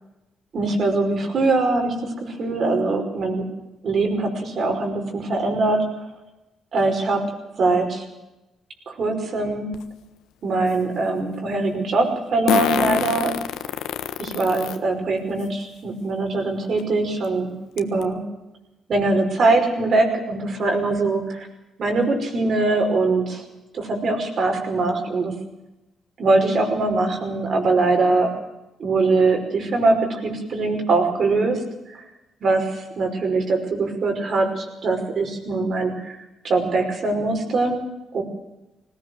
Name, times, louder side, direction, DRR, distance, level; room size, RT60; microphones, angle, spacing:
voice 1, 0.5-3.4 3.8-5.8 6.7-7.2 7.6-8.0 8.9-9.7 10.4-13.3 14.2-18.2 18.9-21.2 21.8-23.4 23.7-25.3 26.2-28.3 28.8-31.6 31.9-32.0 32.4-36.2 36.4-37.8 38.1-38.2, right 3 dB, 55° right, 4 dB, 5.4 m, -22 dB
Fart, 9.7-9.8 12.5-14.8 15.4-15.5 16.8-16.9 17.2-17.3 17.8-18.0, left 11 dB, 90° left, 1.4 m, -25 dB
19.5 x 18.0 x 7.9 m, 0.97 s
cardioid pair, 90°, 0 cm